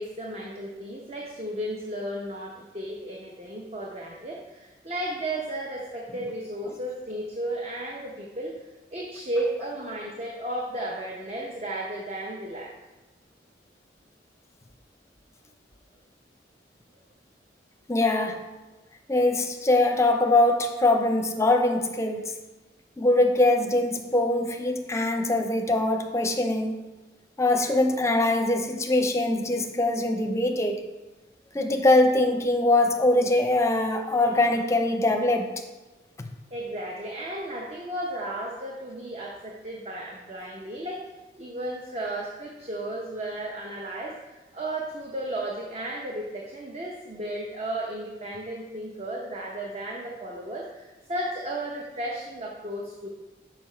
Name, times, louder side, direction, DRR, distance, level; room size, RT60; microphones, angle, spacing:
voice 1, 0.0-8.7 8.9-12.7 20.3-20.6 36.5-41.0 41.4-53.1, right 1 dB, 35° right, -1 dB, 0.8 m, -34 dB
voice 2, 17.9-18.4 19.1-22.3 23.0-26.8 27.4-30.8 31.5-35.5, left 2 dB, 15° left, 5 dB, 0.6 m, -22 dB
6.9 x 5.9 x 4.4 m, 1.1 s
head